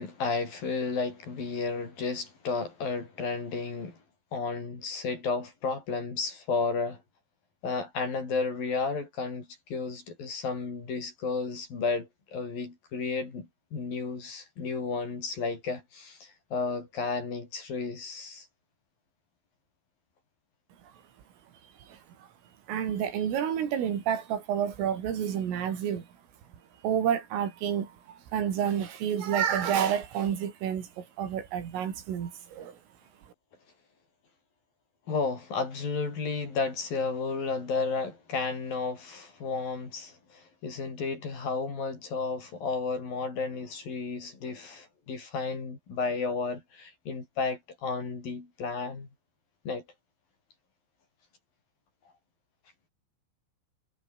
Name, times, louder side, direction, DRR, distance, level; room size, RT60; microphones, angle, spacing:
voice 1, 0.0-4.0 4.3-7.0 7.6-18.5 35.1-49.1 49.7-49.8, left 4 dB, 45° left, 7.0 m, -32 dB
voice 2, 22.7-26.1 26.8-32.8, right 9 dB, 85° right, 6.1 m, -29 dB
omnidirectional pair, 5.7 m